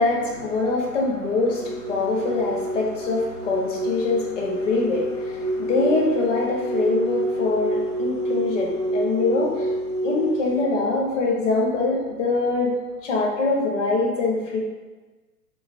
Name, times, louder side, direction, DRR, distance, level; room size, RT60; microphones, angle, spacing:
voice 1, 0.0-9.8 10.0-12.7 13.0-14.6, left 3 dB, 50° left, -2 dB, 0.7 m, -24 dB
sound 1, 1.5-10.6, right 1 dB, 70° right, 0.7 m, -28 dB
2.6 x 2.3 x 2.4 m, 1.3 s
figure-of-eight pair, 120°, 48 cm